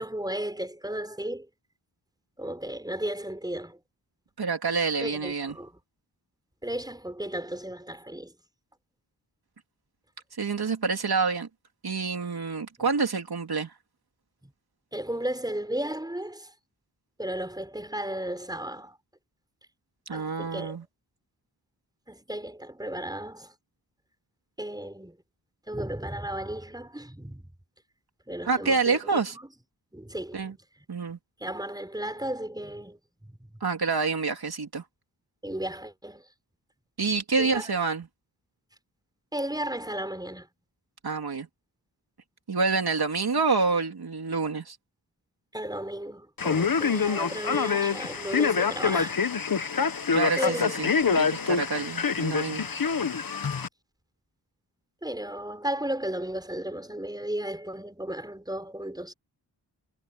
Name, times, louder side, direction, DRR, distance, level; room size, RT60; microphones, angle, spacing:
voice 1, 0.0-1.5 2.4-3.8 5.0-5.7 6.6-8.3 14.9-16.5 17.2-18.9 20.1-20.8 22.1-23.5 24.6-25.2 25.7-27.5 28.3-29.2 29.9-30.5 31.4-33.0 35.4-36.2 37.4-37.7 39.3-40.5 45.5-49.2 50.4-51.2 55.0-59.1, right 1 dB, 10° right, 5.6 m, -34 dB
voice 2, 4.4-5.5 10.4-11.5 11.8-13.7 20.1-20.8 28.4-29.4 30.3-30.5 30.9-31.2 33.6-34.8 37.0-38.1 41.0-41.5 42.5-44.8 50.1-52.6, right 4 dB, 65° right, 3.2 m, -27 dB
Male speech man speaking, 46.4-53.7, left 5 dB, 55° left, 1.4 m, -26 dB
wide cardioid pair, 70°, 41 cm